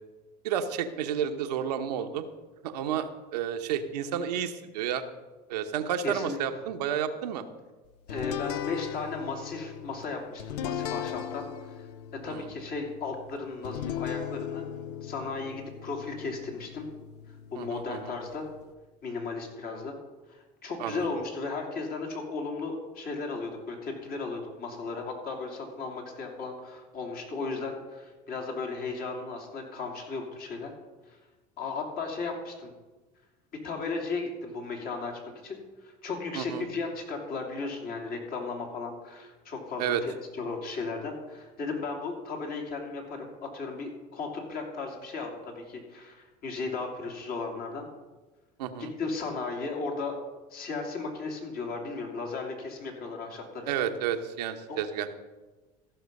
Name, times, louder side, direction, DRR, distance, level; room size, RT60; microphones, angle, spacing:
voice 1, 0.4-2.2 2.6-5.0 5.5-7.4 12.3-12.5 17.6-18.1 20.8-21.1 36.3-36.6 39.8-40.0 48.6-48.9 53.7-55.1, right 9 dB, 90° right, 7 dB, 0.9 m, -31 dB
voice 2, 6.0-6.4 8.1-11.9 12.2-14.6 15.0-16.9 17.3-18.5 19.0-19.9 20.3-30.7 31.1-31.2 31.6-32.7 33.6-47.9 48.8-50.1 50.5-53.7 54.7-54.8, left 4 dB, 50° left, 2 dB, 2.8 m, -35 dB
sound 1, 8.1-18.7, left 10 dB, 85° left, 0.6 m, -38 dB
15.0 x 6.1 x 5.3 m, 1.2 s
supercardioid pair, 85°, 20 cm